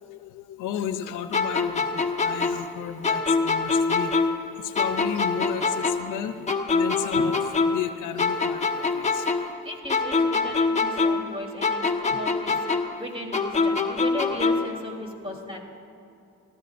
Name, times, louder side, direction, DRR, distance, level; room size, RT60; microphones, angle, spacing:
voice 1, 0.0-9.3 12.1-12.2 12.5-12.6 15.3-15.4, left 9 dB, 85° left, 9 dB, 0.8 m, -33 dB
sound 1, 1.3-4.5 4.7-7.9 8.2-11.3 11.6-14.8, left 4 dB, 25° left, 1.2 m, -24 dB
voice 2, 9.4-15.6, left 1 dB, 20° right, 0 dB, 3.5 m, -36 dB
26.0 x 15.0 x 2.6 m, 2.8 s
cardioid pair, 90°, 30 cm